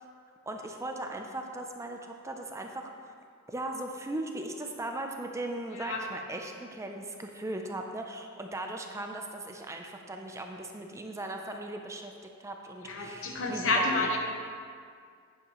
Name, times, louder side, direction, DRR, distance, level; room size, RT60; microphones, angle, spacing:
voice 1, 0.5-3.1 3.5-14.1, right 1 dB, 15° right, 3 dB, 0.5 m, -38 dB
voice 2, 12.9-14.2, left 2 dB, 65° left, 1 dB, 1.1 m, -29 dB
10.0 x 8.8 x 3.0 m, 2.2 s
head